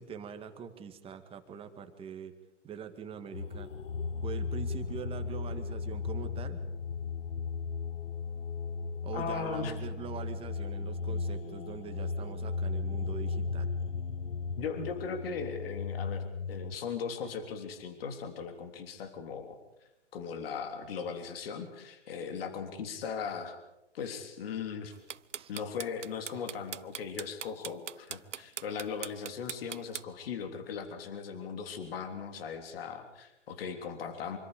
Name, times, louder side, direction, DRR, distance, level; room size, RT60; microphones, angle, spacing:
voice 1, 0.0-2.3 2.6-3.7 4.2-6.6 9.0-13.7 25.3-25.5, right 7 dB, 15° right, 7 dB, 2.0 m, -43 dB
sound 1, 3.3-16.7, left 4 dB, 85° left, 1.0 m, -36 dB
voice 2, 9.1-9.8 14.6-19.6 20.1-23.6 23.9-24.9 25.5-34.4, left 6 dB, 50° left, 7 dB, 3.4 m, -38 dB
sound 2, 24.9-30.0, right 8 dB, 80° right, 0.7 m, -39 dB
25.5 x 25.0 x 5.1 m, 0.93 s
figure-of-eight pair, 125°, 36 cm